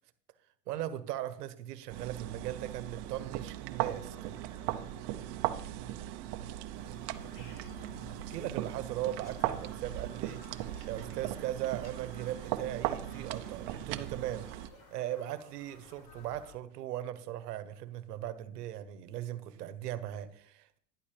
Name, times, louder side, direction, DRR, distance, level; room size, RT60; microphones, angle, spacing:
voice 1, 0.7-4.1 8.1-10.5 10.8-14.6 14.9-20.8, right 12 dB, 80° right, 1.3 m, -38 dB
sound 1, 1.9-14.7, right 13 dB, 50° right, 0.9 m, -38 dB
voice 2, 4.1-8.0, right 1 dB, 5° right, 5.5 m, -60 dB
Bird vocalization bird call bird song, 6.7-16.5, left 3 dB, 40° left, 2.6 m, -56 dB
11.5 x 11.0 x 3.4 m
supercardioid pair, 125°, 47 cm